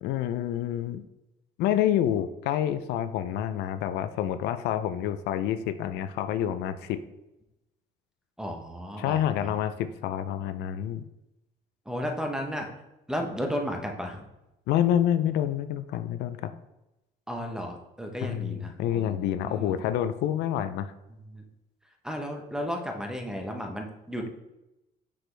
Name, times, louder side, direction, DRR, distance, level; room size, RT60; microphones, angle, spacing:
voice 1, 0.0-1.0 1.6-7.0 9.0-11.0 14.7-16.5 18.2-20.9, left 11 dB, 85° left, 11 dB, 0.4 m, -28 dB
voice 2, 8.4-9.7 11.9-12.7 13.1-14.3 17.3-19.8 21.3-21.4 22.0-24.3, equal, 5° right, 2 dB, 0.9 m, -34 dB
6.0 x 4.9 x 3.3 m, 0.93 s
cardioid pair, 110°, 17 cm